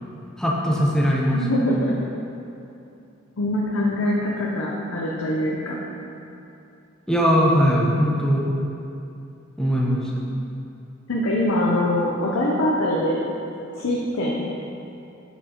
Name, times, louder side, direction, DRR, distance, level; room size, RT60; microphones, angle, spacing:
voice 1, 0.4-1.4 7.1-8.4 9.6-10.1, equal, 5° left, -4 dB, 0.8 m, -20 dB
voice 2, 1.3-2.0 3.4-5.8 11.1-13.2 13.7-14.5, left 1 dB, 85° left, -4 dB, 0.7 m, -23 dB
7.3 x 6.1 x 3.0 m, 2.7 s
head